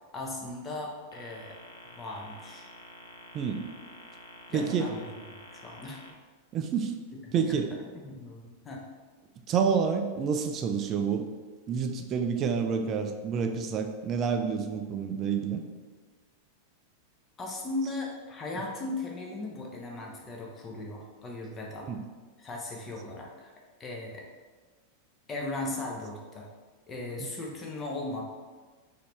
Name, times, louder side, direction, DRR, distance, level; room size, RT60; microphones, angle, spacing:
voice 1, 0.1-1.6 2.0-2.7 4.5-6.0 7.5-7.6 7.9-8.8 17.4-21.9 22.4-23.5 23.8-24.3 25.3-26.5 26.9-28.2, left 2 dB, 20° left, -1 dB, 0.8 m, -37 dB
sound 1, 1.1-6.1, left 1 dB, 70° left, 0.4 m, -49 dB
voice 2, 4.5-4.9 6.5-6.9 7.3-7.8 9.5-11.3 11.7-15.6 17.8-17.9 18.5-18.7 21.8-22.0, right 6 dB, 30° right, 5 dB, 0.4 m, -28 dB
4.0 x 2.7 x 3.3 m, 1.4 s
figure-of-eight pair, 90°, 0 cm